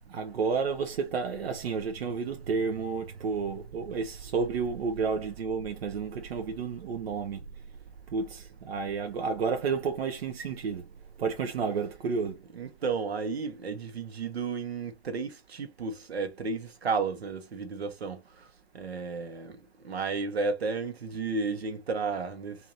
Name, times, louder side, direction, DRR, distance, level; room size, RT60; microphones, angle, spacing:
voice 1, 0.1-7.4 8.1-10.9 11.2-12.4, right 5 dB, 75° right, 0.8 m, -31 dB
voice 2, 12.5-18.2 18.7-19.6 19.8-22.6, right 4 dB, 90° right, 1.2 m, -32 dB
3.9 x 2.9 x 2.9 m
hypercardioid pair, 145°, 31 cm